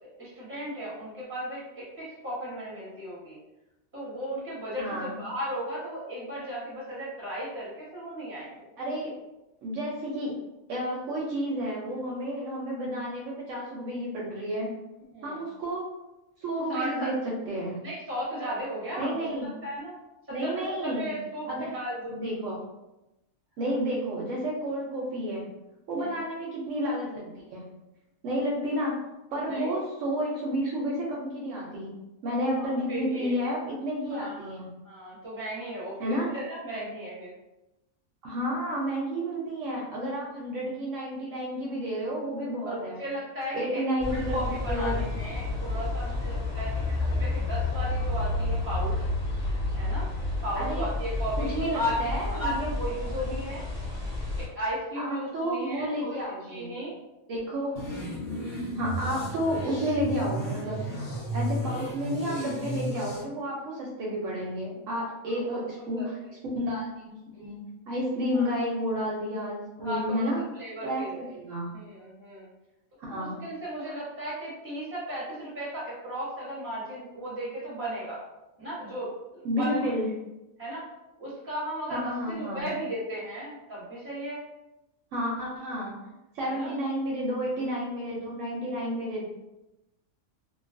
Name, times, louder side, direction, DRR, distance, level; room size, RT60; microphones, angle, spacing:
voice 1, 0.0-3.4 3.9-8.7 15.1-15.4 16.7-17.1 17.8-19.3 19.6-20.0 20.3-22.2 23.6-23.7 26.0-26.2 29.4-29.7 32.6-33.3 34.1-34.5 34.8-37.3 42.6-49.1 49.7-50.1 50.4-53.6 54.4-56.2 56.5-56.9 65.4-65.6 66.0-66.1 68.3-68.5 69.8-70.3 70.5-71.1 71.7-72.5 73.1-78.2 78.6-79.9 80.6-80.9 81.2-84.4 86.4-86.7, equal, 10° right, -8 dB, 0.9 m, -35 dB
voice 2, 4.8-5.2 8.8-9.1 9.6-10.3 10.7-14.7 15.2-15.8 16.4-17.1 17.5-17.8 19.0-19.5 20.3-21.1 21.5-21.7 22.1-22.6 23.6-25.5 25.9-27.6 28.2-29.0 29.3-31.9 32.2-34.7 36.0-36.3 38.2-43.0 43.5-45.0 50.5-50.9 51.4-52.7 55.0-56.7 57.3-57.8 58.7-66.2 66.6-67.6 67.9-70.4 70.8-71.7 73.0-73.4 79.4-80.1 81.9-82.7 85.1-89.2, equal, 70° right, -4 dB, 0.9 m, -31 dB
sound 1, 44.0-54.5, left 2 dB, 20° left, 0.8 m, -30 dB
sound 2, 57.7-63.2, right 1 dB, 80° left, 1.2 m, -33 dB
2.7 x 2.2 x 2.5 m, 0.96 s
omnidirectional pair, 1.5 m